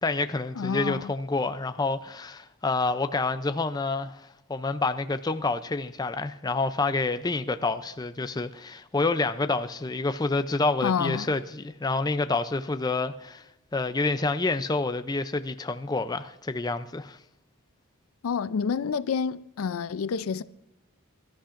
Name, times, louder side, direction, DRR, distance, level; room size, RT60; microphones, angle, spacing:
voice 1, 0.0-17.2, left 3 dB, 20° left, 0.4 m, -28 dB
voice 2, 0.6-1.1 10.8-11.3 18.2-20.4, left 6 dB, 75° left, 0.4 m, -28 dB
23.5 x 13.0 x 2.5 m
head